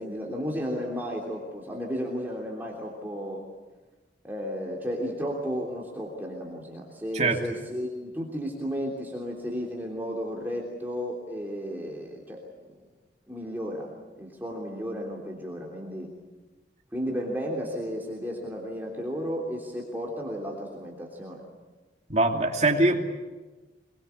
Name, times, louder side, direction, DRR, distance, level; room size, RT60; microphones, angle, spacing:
voice 1, 0.0-3.4 4.2-12.4 12.7-12.8 13.3-16.1 16.9-21.4, equal, 10° right, -2 dB, 3.2 m, -33 dB
voice 2, 22.1-23.0, right 2 dB, 35° right, 2 dB, 2.8 m, -22 dB
24.5 x 22.5 x 8.5 m, 1.2 s
head